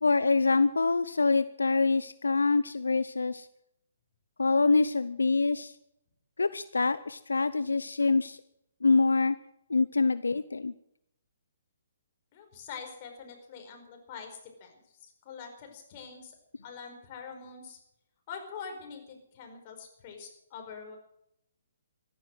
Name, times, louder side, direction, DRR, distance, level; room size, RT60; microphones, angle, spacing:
voice 1, 0.0-3.5 4.4-5.7 6.4-8.4 8.8-9.4 9.7-10.7, left 3 dB, 80° left, 15 dB, 0.7 m, -25 dB
voice 2, 12.3-16.3 16.6-17.8 18.3-21.0, left 6 dB, 35° left, 3 dB, 4.8 m, -45 dB
14.5 x 11.5 x 7.8 m, 0.76 s
figure-of-eight pair, 135°, 0 cm